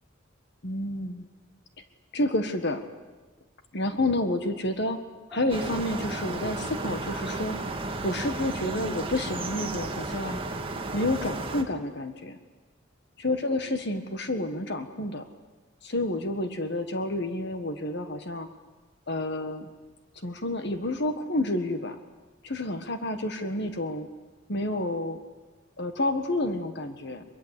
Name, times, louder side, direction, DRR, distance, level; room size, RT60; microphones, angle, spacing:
voice 1, 0.6-1.3 2.1-2.8 3.7-5.0 5.3-7.6 8.0-10.4 10.9-12.4 13.2-15.3 15.8-18.5 19.1-19.7 20.2-22.0 22.4-24.1 24.5-25.2 25.8-27.2, left 1 dB, 55° left, 8 dB, 1.6 m, -29 dB
sound 1, 5.3-8.3, equal, ahead, 7.7 m, -50 dB
sound 2, 5.5-11.6, right 2 dB, 25° right, 1.8 m, -33 dB
23.0 x 23.0 x 8.4 m, 1.3 s
head